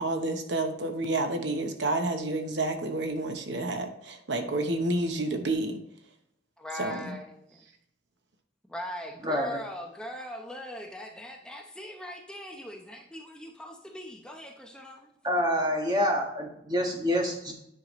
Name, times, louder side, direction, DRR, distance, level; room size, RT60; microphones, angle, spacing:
voice 1, 0.0-5.8 6.8-7.2, right 2 dB, 75° right, 6 dB, 0.9 m, -29 dB
voice 2, 6.6-7.6 8.7-15.1, left 1 dB, 5° left, 1 dB, 0.7 m, -40 dB
voice 3, 9.2-9.6 15.2-17.5, equal, 20° right, 1 dB, 1.4 m, -27 dB
9.8 x 5.6 x 3.1 m, 0.75 s
head